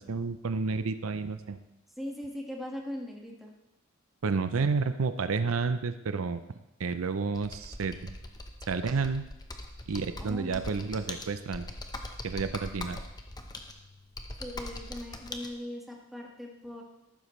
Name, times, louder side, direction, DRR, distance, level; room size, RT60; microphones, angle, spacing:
voice 1, 0.0-1.6 4.2-6.4 6.8-8.1 8.7-9.2 9.9-11.7 12.2-13.0, right 4 dB, 80° right, 11 dB, 0.6 m, -30 dB
voice 2, 2.0-3.5 10.2-10.7 14.4-16.8, left 1 dB, ahead, -1 dB, 1.6 m, -40 dB
Computer keyboard, 7.3-15.5, left 2 dB, 20° left, 0.9 m, -41 dB
14.0 x 12.0 x 3.2 m, 0.93 s
head